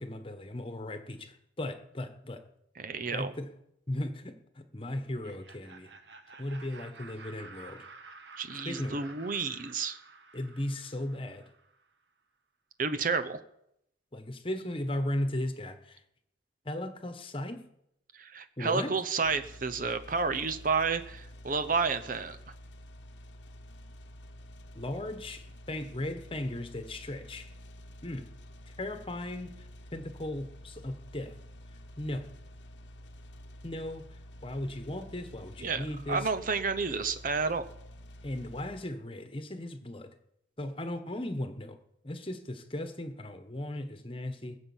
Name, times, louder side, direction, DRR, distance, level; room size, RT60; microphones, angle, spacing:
voice 1, 0.0-2.4 3.1-3.5 3.9-5.9 6.4-7.8 8.6-9.1 10.3-11.4 14.1-16.0 16.6-17.7 18.6-18.9 24.7-27.5 28.0-28.3 28.7-29.5 29.9-31.4 32.0-32.3 33.6-34.1 34.4-36.3 36.9-37.0 38.2-40.1 40.6-41.8 42.0-44.6, left 1 dB, 30° left, 8 dB, 1.3 m, -36 dB
voice 2, 2.8-3.3 8.4-10.0 12.8-13.4 18.1-22.4 35.6-37.6, right 4 dB, 45° right, 10 dB, 0.8 m, -31 dB
Laughter, 5.0-11.8, right 4 dB, 70° right, 1.4 m, -51 dB
sound 1, 19.2-38.8, equal, 75° left, 1.1 m, -49 dB
21.0 x 7.2 x 7.3 m, 0.79 s
head